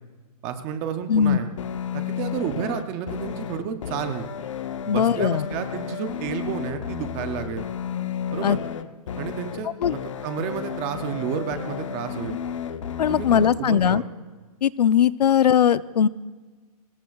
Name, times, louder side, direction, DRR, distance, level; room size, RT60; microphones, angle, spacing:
voice 1, 0.4-1.5 1.9-4.3 4.8-7.7 8.3-8.6 9.2-12.4 13.1-14.0, right 8 dB, 10° right, 8 dB, 0.4 m, -31 dB
sound 1, 1.6-13.6, left 8 dB, 50° left, 0.8 m, -32 dB
voice 2, 4.9-5.5 8.4-8.6 9.8-9.9 13.0-14.0 14.6-16.1, left 8 dB, 85° left, 17 dB, 0.6 m, -19 dB
23.5 x 20.0 x 2.3 m, 1.4 s
hypercardioid pair, 170°, 20 cm